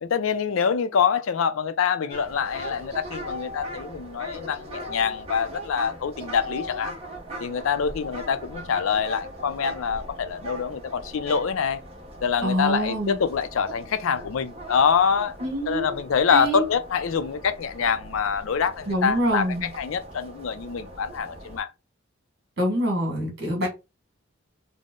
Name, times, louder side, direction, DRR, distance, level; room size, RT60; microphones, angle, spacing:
voice 1, 0.0-6.9 7.4-11.8 12.2-15.3 15.7-21.7, left 6 dB, 75° left, 0.4 m, -25 dB
sound 1, 2.1-21.6, equal, 30° right, 0.9 m, -40 dB
voice 2, 12.4-13.2 15.4-16.0 16.3-16.7 18.9-19.7 22.6-23.7, equal, 50° right, 1.7 m, -25 dB
3.7 x 2.1 x 3.7 m
head